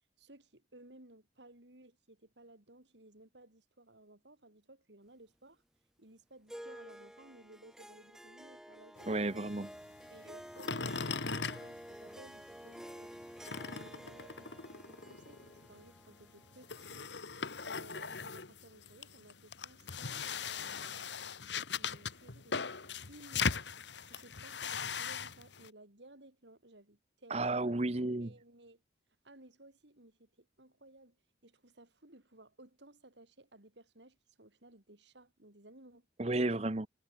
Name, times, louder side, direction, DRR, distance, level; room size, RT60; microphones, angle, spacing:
voice 1, 0.2-5.6 6.0-9.6 10.1-17.1 17.6-23.7 24.0-27.7 28.2-28.8 29.2-36.1, right 2 dB, 75° right, 3.8 m, -58 dB
Harp, 6.5-17.1, equal, 5° right, 0.7 m, -51 dB
sound 1, 9.0-12.5 12.8-25.7, left 5 dB, 80° left, 1.7 m, -40 dB
voice 2, 9.1-9.7 27.3-28.3 36.2-36.9, right 2 dB, 35° right, 1.0 m, -32 dB
head